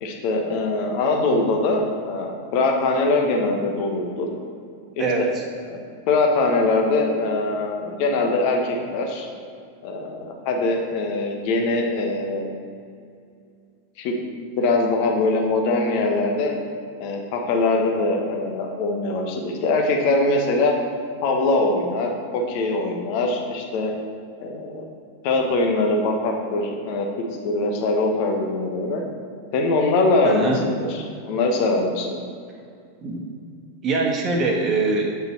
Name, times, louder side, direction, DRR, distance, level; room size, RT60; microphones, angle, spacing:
voice 1, 0.0-4.3 4.9-5.0 5.7-5.8 6.1-9.3 9.8-12.5 14.0-16.5 17.0-20.8 21.2-23.9 24.4-24.8 25.2-27.1 27.4-29.0 29.5-32.2, left 2 dB, 45° left, 1 dB, 1.2 m, -22 dB
voice 2, 30.2-30.6 33.0-33.2 33.8-35.2, right 3 dB, 30° right, 1 dB, 1.3 m, -23 dB
8.2 x 5.5 x 4.4 m, 2.3 s
figure-of-eight pair, 90°, 0 cm